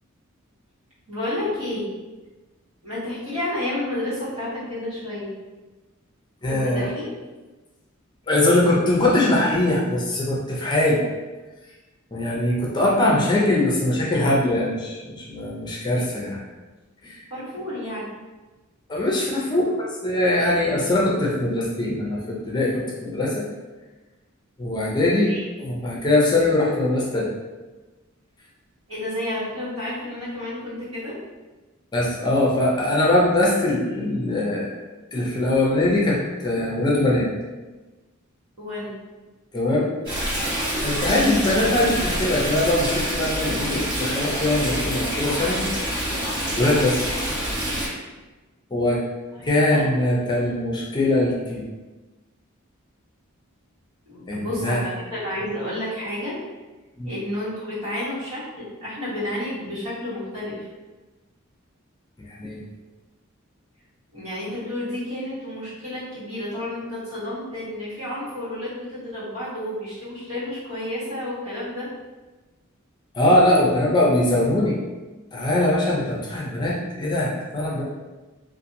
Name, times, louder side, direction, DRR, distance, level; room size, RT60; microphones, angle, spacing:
voice 1, 1.1-1.8 2.8-5.3 6.5-7.1 17.3-18.1 25.0-25.4 28.9-31.2 38.6-38.9 40.9-41.3 49.4-49.9 54.0-56.4 57.0-60.7 64.1-71.9, left 1 dB, 80° right, -9 dB, 1.4 m, -31 dB
voice 2, 6.4-6.9 8.3-11.0 12.1-16.4 17.0-17.3 18.9-23.5 24.6-27.3 31.9-34.7 35.1-37.3 39.5-39.9 40.8-45.7 46.6-47.1 48.7-49.0 49.4-51.6 54.3-54.8 57.0-57.1 62.2-62.6 73.1-74.8 75.3-77.8, left 1 dB, 20° left, -4 dB, 0.5 m, -22 dB
Stream, 40.0-47.9, equal, 50° right, 1.4 m, -26 dB
2.8 x 2.5 x 2.6 m, 1.2 s
head